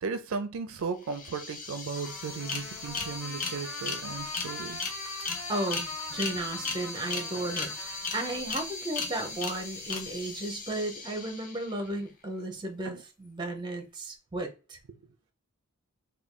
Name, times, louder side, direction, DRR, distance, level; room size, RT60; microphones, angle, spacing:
voice 1, 0.0-4.8 12.8-13.0, right 4 dB, 65° right, 0.4 m, -36 dB
sound 1, 0.8-0.9 1.1-11.9, left 3 dB, 40° left, 0.7 m, -37 dB
Trumpet, 1.9-8.4, left 4 dB, 80° left, 0.9 m, -44 dB
voice 2, 5.5-14.8, right 1 dB, 20° right, 0.7 m, -34 dB
3.5 x 2.3 x 3.6 m
head